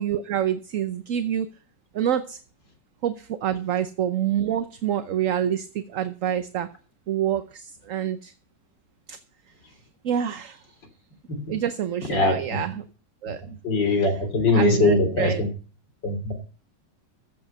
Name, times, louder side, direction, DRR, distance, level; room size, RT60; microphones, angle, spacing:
voice 1, 0.0-1.5 1.9-2.4 3.0-6.7 7.1-8.3 9.1-9.2 10.0-10.7 11.5-12.8 13.2-13.6 14.0-14.2 14.5-15.4, right 10 dB, 55° right, 10 dB, 1.0 m, -27 dB
voice 2, 12.1-12.6 13.6-15.5 16.0-16.3, left 2 dB, 80° left, 6 dB, 3.7 m, -22 dB
14.5 x 7.7 x 5.5 m, 0.38 s
omnidirectional pair, 1.9 m